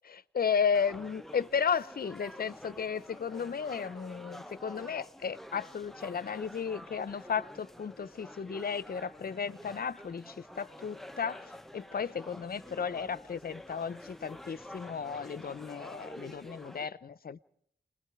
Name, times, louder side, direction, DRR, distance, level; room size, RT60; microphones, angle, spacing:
voice 1, 0.1-17.4, left 6 dB, 55° left, 0.8 m, -34 dB
sound 1, 0.7-16.8, equal, ahead, 0.8 m, -49 dB
28.5 x 21.0 x 4.8 m
cardioid pair, 50°, 19 cm